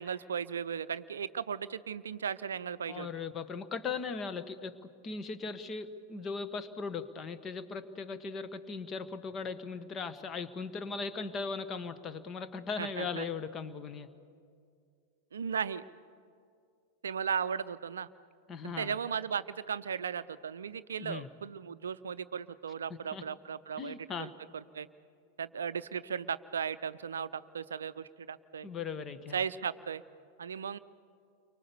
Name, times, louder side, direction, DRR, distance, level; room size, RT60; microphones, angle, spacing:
voice 1, 0.0-3.1 12.8-13.3 15.3-15.8 17.0-18.1 18.6-24.9 25.4-28.7 29.3-30.0 30.4-30.8, right 7 dB, 70° right, 15 dB, 0.5 m, -36 dB
voice 2, 2.9-14.1 18.5-19.0 21.0-21.3 23.1-23.2 23.8-24.3 28.6-29.4, left 5 dB, 25° left, 11 dB, 1.3 m, -38 dB
30.0 x 24.0 x 7.0 m, 2.3 s
figure-of-eight pair, 90°, 0 cm